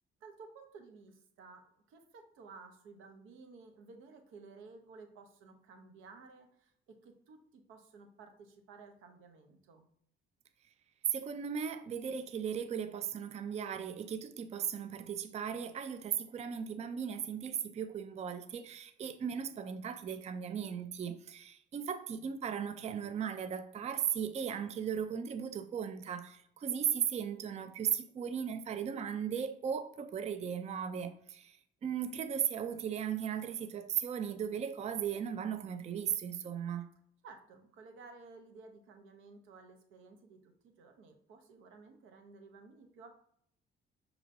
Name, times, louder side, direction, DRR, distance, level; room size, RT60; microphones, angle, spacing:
voice 1, 0.2-9.9 37.2-43.1, right 4 dB, 90° right, 0.8 m, -55 dB
voice 2, 11.1-36.9, right 8 dB, 35° right, 0.4 m, -37 dB
6.4 x 2.9 x 2.6 m
cardioid pair, 90°, 20 cm